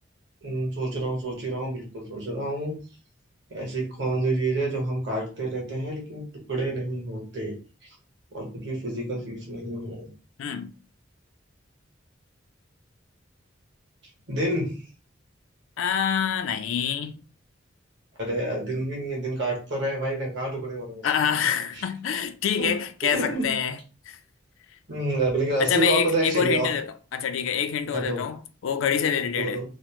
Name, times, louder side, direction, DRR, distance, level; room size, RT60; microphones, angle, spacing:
voice 1, 0.4-2.8 3.5-7.6 8.3-10.1 14.3-14.9 18.2-21.1 21.8-21.9 22.6-22.7 23.0-23.5 24.9-26.7 27.9-28.2 29.3-29.6, right 2 dB, 65° right, 1.2 m, -28 dB
voice 2, 10.4-10.7 15.8-17.2 21.0-23.8 24.1-24.2 25.6-26.9 27.1-29.6, left 7 dB, 90° left, 0.4 m, -26 dB
2.8 x 2.0 x 3.0 m
head